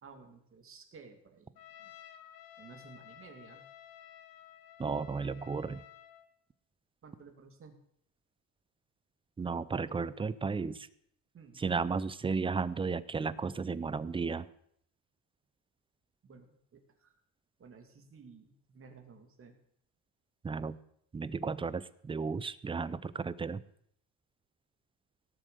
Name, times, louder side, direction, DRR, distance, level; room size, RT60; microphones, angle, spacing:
voice 1, 0.0-1.9 2.6-3.6 7.0-7.8 11.3-11.6 16.2-17.2 17.6-19.6, right 5 dB, 35° right, 5 dB, 2.3 m, -55 dB
Trumpet, 1.6-6.3, left 11 dB, 70° left, 1.6 m, -54 dB
voice 2, 4.8-5.8 9.4-10.9 11.6-14.5 20.4-20.8 21.1-23.6, right 5 dB, 15° right, 17 dB, 0.4 m, -34 dB
17.5 x 7.3 x 6.7 m, 0.69 s
cardioid pair, 130°, 36 cm